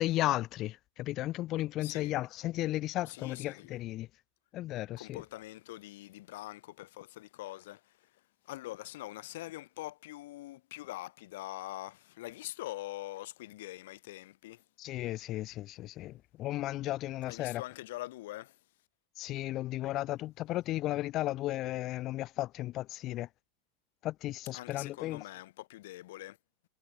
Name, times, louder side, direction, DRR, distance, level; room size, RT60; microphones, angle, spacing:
voice 1, 0.0-4.1 4.5-5.2 14.8-17.6 19.2-23.3 24.0-25.2, left 15 dB, 40° left, 1.3 m, -34 dB
voice 2, 1.8-2.1 3.2-3.7 5.0-7.8 8.5-14.6 17.3-18.5 24.5-26.3, left 17 dB, 80° left, 1.7 m, -43 dB
supercardioid pair, 150°, 0 cm